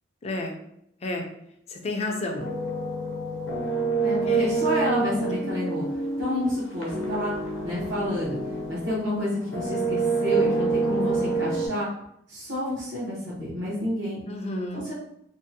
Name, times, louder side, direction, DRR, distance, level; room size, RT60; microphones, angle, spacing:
voice 1, 0.2-0.5 1.0-1.3 1.7-2.5 4.2-4.6 14.2-14.9, left 2 dB, 35° left, 2 dB, 0.4 m, -31 dB
sound 1, 2.4-9.1 9.5-11.7, right 3 dB, 80° left, 0.7 m, -27 dB
voice 2, 4.0-5.8 6.2-7.3 7.6-8.4 8.7-11.9 12.3-14.2 14.7-14.9, left 1 dB, 70° right, -7 dB, 0.7 m, -29 dB
2.6 x 2.1 x 2.6 m, 0.75 s
head